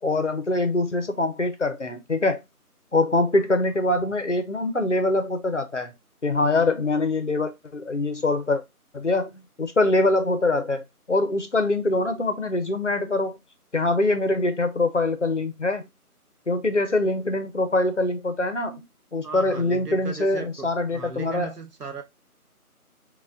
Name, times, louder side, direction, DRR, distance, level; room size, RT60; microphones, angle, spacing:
voice 1, 0.0-2.4 2.9-5.9 6.2-8.6 8.9-13.4 13.7-15.9 16.5-18.9 19.1-21.5, left 2 dB, 55° left, 0.5 m, -24 dB
voice 2, 19.2-22.0, right 4 dB, 85° right, 1.0 m, -37 dB
4.2 x 2.2 x 2.5 m
figure-of-eight pair, 175°, 45 cm